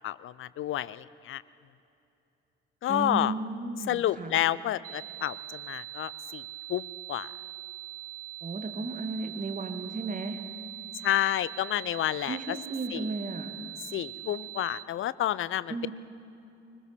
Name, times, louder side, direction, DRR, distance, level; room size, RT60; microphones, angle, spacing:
voice 1, 0.0-1.4 2.8-3.3 3.9-6.4 6.7-7.3 11.0-12.4 12.9-13.0 13.9-15.7, left 12 dB, 45° left, 18 dB, 0.6 m, -30 dB
voice 2, 2.9-4.4 8.4-10.4 12.3-13.6 15.7-15.9, right 3 dB, 25° right, 5 dB, 2.3 m, -34 dB
sound 1, 4.8-14.8, right 15 dB, 50° right, 0.7 m, -42 dB
23.5 x 20.5 x 5.9 m, 2.8 s
figure-of-eight pair, 45°, 30 cm